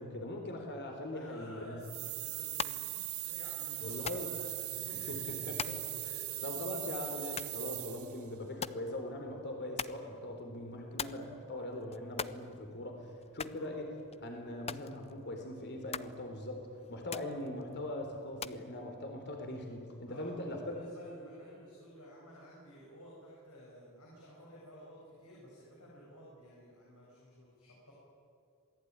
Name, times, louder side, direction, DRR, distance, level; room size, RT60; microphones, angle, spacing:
voice 1, 0.0-1.8 3.8-4.3 5.1-5.8 6.4-13.9 14.2-20.8, left 1 dB, 50° left, 3 dB, 4.0 m, -41 dB
voice 2, 1.1-4.5 4.8-5.7 6.0-6.7 13.4-13.7 20.1-27.9, equal, 85° left, -5 dB, 7.7 m, -53 dB
sound 1, 1.8-8.2, right 18 dB, 70° right, 1.0 m, -40 dB
sound 2, 2.4-18.6, left 7 dB, 30° left, 0.6 m, -46 dB
27.0 x 18.5 x 9.8 m, 2.5 s
head